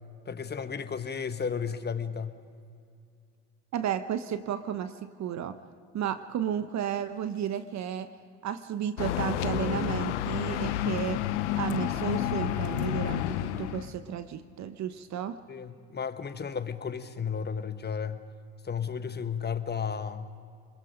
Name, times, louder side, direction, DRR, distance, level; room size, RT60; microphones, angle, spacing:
voice 1, 0.3-2.4 15.5-18.2 18.6-20.3, left 6 dB, 30° left, 10 dB, 1.3 m, -33 dB
voice 2, 3.7-5.6 5.9-8.1 8.4-11.3 11.5-15.4, right 9 dB, 55° right, 11 dB, 1.0 m, -33 dB
sound 1, 9.0-13.9, left 12 dB, 90° left, 0.7 m, -30 dB
25.5 x 22.0 x 5.2 m, 2.4 s
hypercardioid pair, 65°, 34 cm